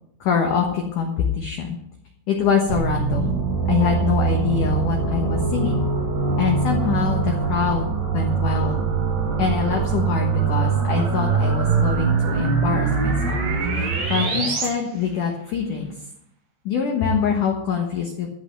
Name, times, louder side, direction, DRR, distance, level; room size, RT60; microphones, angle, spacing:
voice 1, 0.2-1.8 2.3-3.4 3.7-5.8 6.4-8.8 9.4-13.3 13.7-15.9 16.7-18.3, left 6 dB, 70° left, 2 dB, 1.9 m, -24 dB
sound 1, 2.7-14.7, right 5 dB, 60° right, 5.6 m, -22 dB
14.0 x 5.6 x 8.9 m, 0.74 s
omnidirectional pair, 5.6 m